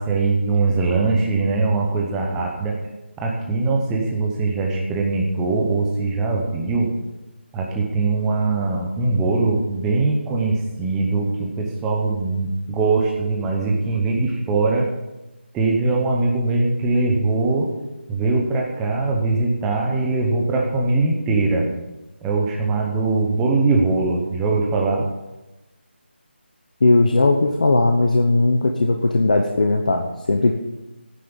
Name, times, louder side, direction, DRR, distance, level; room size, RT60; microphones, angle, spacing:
voice 1, 0.0-2.7 3.2-6.9 7.5-14.9 15.5-17.7 18.1-21.7 22.2-25.1, right 3 dB, 5° right, 0 dB, 0.7 m, -21 dB
voice 2, 26.8-30.5, left 2 dB, 45° left, 3 dB, 1.0 m, -18 dB
13.0 x 9.8 x 7.1 m, 1.0 s
figure-of-eight pair, 175°, 6 cm